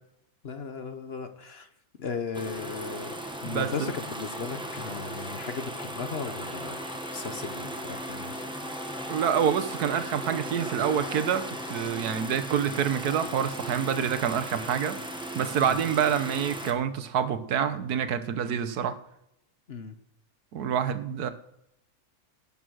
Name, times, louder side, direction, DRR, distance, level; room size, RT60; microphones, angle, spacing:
voice 1, 0.4-1.7 2.0-3.1 3.4-6.8 7.0-8.4 15.6-15.8 19.7-19.9, left 5 dB, 45° left, 9 dB, 1.1 m, -36 dB
sound 1, 2.3-16.7, right 1 dB, 5° right, 1.2 m, -37 dB
voice 2, 3.4-3.9 9.1-15.0 15.3-19.0 20.5-21.3, right 8 dB, 85° right, 11 dB, 1.5 m, -27 dB
sound 2, 5.3-16.5, left 2 dB, 65° left, 2.0 m, -45 dB
17.0 x 7.0 x 6.3 m, 0.83 s
omnidirectional pair, 1.6 m